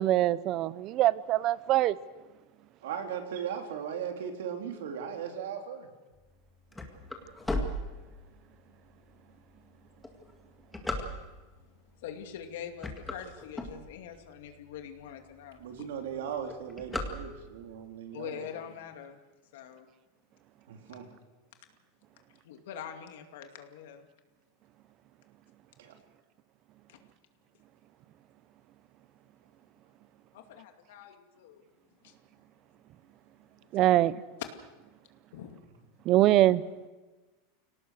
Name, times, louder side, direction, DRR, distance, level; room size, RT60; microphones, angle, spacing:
voice 1, 0.0-1.9 33.7-34.1 36.1-36.6, right 14 dB, 40° right, 18 dB, 0.7 m, -23 dB
voice 2, 2.8-5.9 15.6-18.5 20.7-21.0 25.8-25.9, right 8 dB, 90° right, 3 dB, 3.6 m, -37 dB
sound 1, 6.3-8.5 9.1-9.2 9.9-11.6 12.2-12.4 12.7-14.3 14.8-14.9 15.1-15.2 15.5-15.8 16.1-17.7, left 1 dB, 5° left, 2.0 m, -36 dB
voice 3, 12.0-15.6 18.1-19.2 19.5-19.9 22.4-24.0 26.9-27.0 30.3-31.6 32.0-32.1 35.3-35.6, left 8 dB, 75° left, 5 dB, 2.4 m, -44 dB
24.5 x 18.0 x 6.6 m, 1.2 s
supercardioid pair, 150°, 0 cm